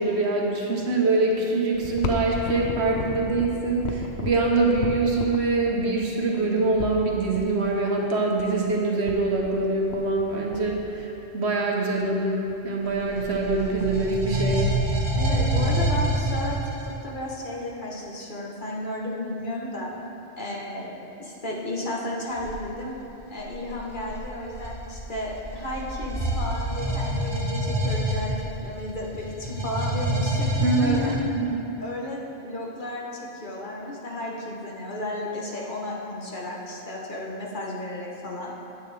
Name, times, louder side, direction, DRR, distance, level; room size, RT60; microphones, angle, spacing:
voice 1, 0.0-14.7 30.6-31.6, right 3 dB, 80° right, -1 dB, 1.3 m, -24 dB
sound 1, 1.7-7.4 8.3-8.4 8.7-8.8 9.1-9.6 9.9-10.3 10.5-11.4 12.0-12.1 12.5-12.8 13.2-13.3 13.4-14.0 14.5-15.3 15.7-15.8 16.7-16.8, left 4 dB, 80° left, 1.0 m, -34 dB
sound 2, 12.9-17.0 22.4-22.6 23.4-31.2, right 1 dB, 25° right, 1.1 m, -27 dB
voice 2, 15.1-19.9 20.4-22.9 23.3-28.4 28.6-31.2 31.8-38.5, left 1 dB, 50° left, -3 dB, 1.3 m, -33 dB
9.4 x 8.6 x 3.4 m, 2.9 s
omnidirectional pair, 1.1 m